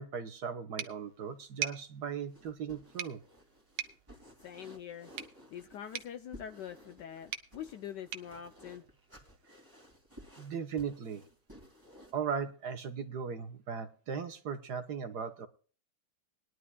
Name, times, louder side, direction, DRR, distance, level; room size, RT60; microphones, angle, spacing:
voice 1, 0.0-3.2 9.5-9.6 10.4-11.2 12.1-15.5, right 6 dB, 60° right, 1.3 m, -38 dB
sound 1, 0.8-9.5, right 10 dB, 90° right, 1.9 m, -45 dB
sound 2, 2.3-12.2, equal, 10° right, 2.1 m, -56 dB
voice 2, 4.4-5.1 5.5-8.8, left 9 dB, 70° left, 1.1 m, -44 dB
21.0 x 11.0 x 2.2 m
omnidirectional pair, 2.4 m